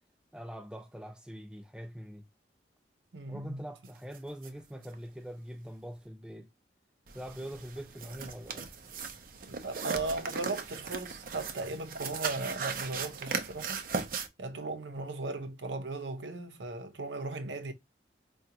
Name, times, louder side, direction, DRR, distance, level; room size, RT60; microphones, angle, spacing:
voice 1, 0.3-2.2 3.3-6.5 7.1-8.7, equal, 5° right, 0.7 m, -43 dB
voice 2, 3.1-3.6 9.5-13.8 14.4-17.7, right 3 dB, 85° right, 0.7 m, -37 dB
sound 1, 4.1-4.2 4.4-4.5 4.8-4.9 7.1-14.3, right 5 dB, 50° right, 0.6 m, -38 dB
4.8 x 2.4 x 2.8 m
head